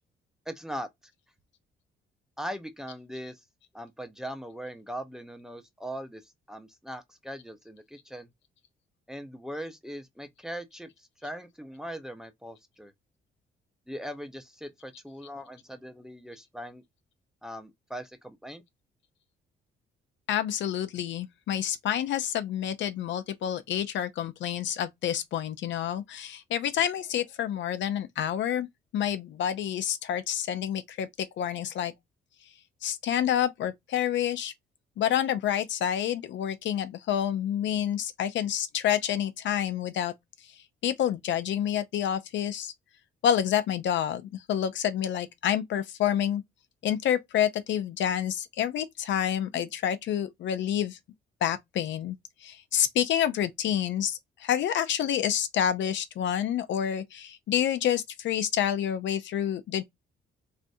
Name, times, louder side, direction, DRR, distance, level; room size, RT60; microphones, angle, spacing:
voice 1, 0.5-0.9 2.4-3.4 3.7-8.3 9.1-12.9 13.9-16.8 17.4-18.6, equal, 5° right, 0.6 m, -40 dB
voice 2, 20.3-28.7 28.9-31.9 32.8-34.5 35.0-40.1 40.8-42.7 43.2-44.2 44.5-46.4 46.8-51.0 51.4-52.2 52.4-59.8, left 10 dB, 70° left, 0.5 m, -28 dB
3.2 x 2.5 x 2.7 m
cardioid pair, 90°, 20 cm